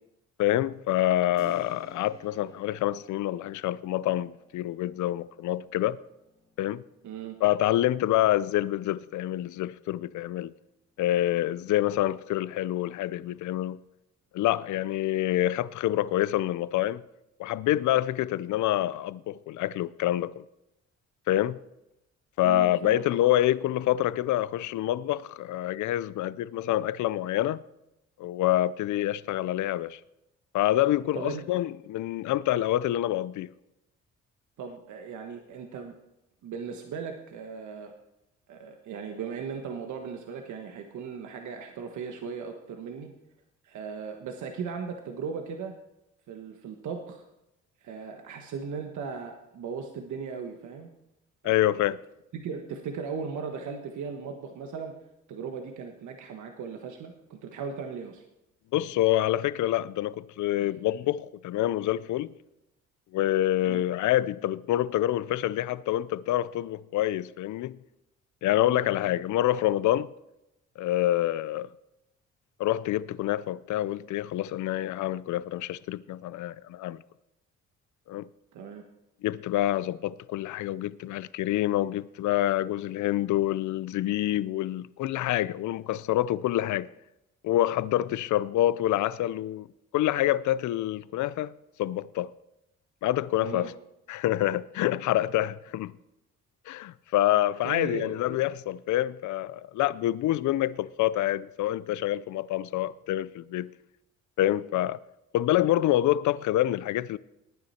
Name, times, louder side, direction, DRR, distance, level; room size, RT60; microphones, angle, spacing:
voice 1, 0.4-6.0 6.6-6.8 7.4-10.5 11.0-13.8 14.3-17.0 17.4-20.4 21.3-21.6 22.4-27.6 28.2-30.0 30.5-33.5 51.4-52.0 58.7-62.3 63.1-67.8 68.4-70.1 70.8-71.7 72.6-77.0 78.1-78.3 79.2-86.9 87.4-89.7 89.9-91.5 91.8-92.3 93.0-93.7 94.1-95.9 96.7-103.7 104.4-105.0 105.3-107.2, left 14 dB, 75° left, 0.6 m, -27 dB
Keyboard (musical), 1.4-9.9, equal, 10° left, 2.5 m, -55 dB
voice 2, 7.0-7.4 22.4-23.0 31.1-31.5 34.6-35.9 36.4-37.9 38.5-43.1 43.6-45.7 46.3-47.2 47.8-50.9 51.4-51.5 52.3-54.9 55.3-58.2 60.6-60.7 63.6-63.8 68.6-68.9 78.5-78.8 93.4-93.7 97.6-98.2, right 6 dB, 75° right, 1.4 m, -37 dB
18.0 x 9.5 x 4.3 m
cardioid pair, 90°, 30 cm